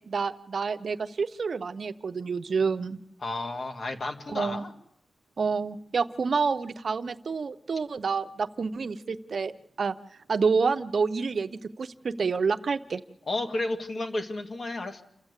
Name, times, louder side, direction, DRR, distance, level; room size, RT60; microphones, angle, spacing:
voice 1, 0.1-3.0 4.3-4.6 5.4-9.5 9.8-9.9 10.3-13.0, right 5 dB, 60° right, 11 dB, 0.7 m, -28 dB
voice 2, 3.2-4.7 13.3-15.0, left 2 dB, 50° left, 4 dB, 2.1 m, -32 dB
29.0 x 13.0 x 8.2 m, 0.85 s
wide cardioid pair, 100°, 0 cm